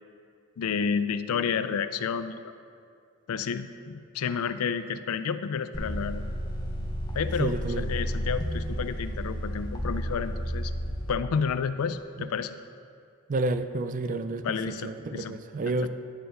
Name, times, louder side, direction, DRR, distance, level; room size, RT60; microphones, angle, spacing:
voice 1, 0.6-2.4 3.3-6.2 7.1-10.7 11.1-12.6 14.4-15.4 15.7-15.9, left 6 dB, 85° left, 12 dB, 0.4 m, -30 dB
sound 1, 5.7-11.1, equal, 20° left, 0.8 m, -32 dB
voice 2, 7.4-7.9 13.3-15.9, right 2 dB, 35° right, 10 dB, 0.4 m, -30 dB
10.0 x 4.6 x 6.4 m, 2.3 s
head